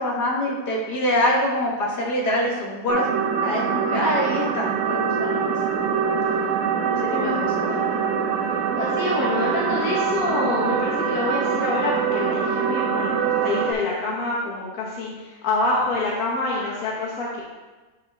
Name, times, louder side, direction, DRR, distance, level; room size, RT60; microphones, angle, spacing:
voice 1, 0.0-3.0 3.4-5.5 6.8-7.3, left 1 dB, 80° left, -2 dB, 1.8 m, -24 dB
sound 1, 2.9-13.7, right 6 dB, 80° right, 1.1 m, -24 dB
voice 2, 7.1-7.9 8.8-17.4, left 2 dB, 65° left, -4 dB, 1.5 m, -26 dB
9.7 x 3.8 x 3.3 m, 1.2 s
omnidirectional pair, 1.7 m